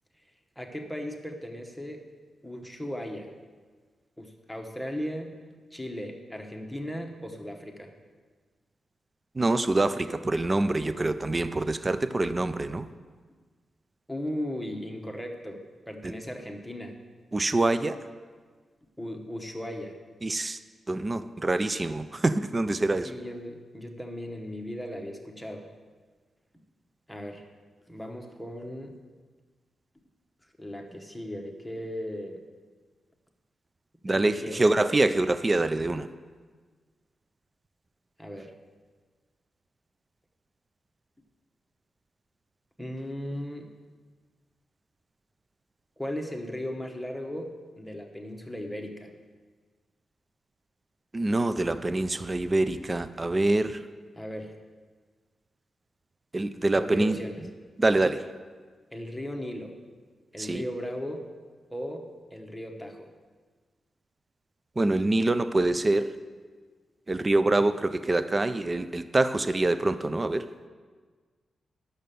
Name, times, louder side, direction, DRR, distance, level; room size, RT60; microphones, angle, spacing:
voice 1, 0.6-2.0 2.4-3.3 4.2-5.4 5.7-7.9 14.1-17.0 19.0-20.0 23.0-25.7 27.1-27.5 27.9-28.9 30.6-32.4 34.1-35.0 38.2-38.5 42.8-43.7 46.0-49.1 54.1-54.6 56.8-57.4 58.9-59.7 60.3-61.3 61.7-63.1, equal, 5° left, 2 dB, 1.0 m, -37 dB
voice 2, 9.4-12.9 17.3-18.0 20.2-20.6 20.9-23.1 34.0-36.1 51.1-53.8 56.3-57.2 57.8-58.2 60.4-60.6 64.8-66.1 67.1-70.5, right 2 dB, 20° right, 12 dB, 0.4 m, -25 dB
10.5 x 6.5 x 6.8 m, 1.5 s
wide cardioid pair, 150°, 0 cm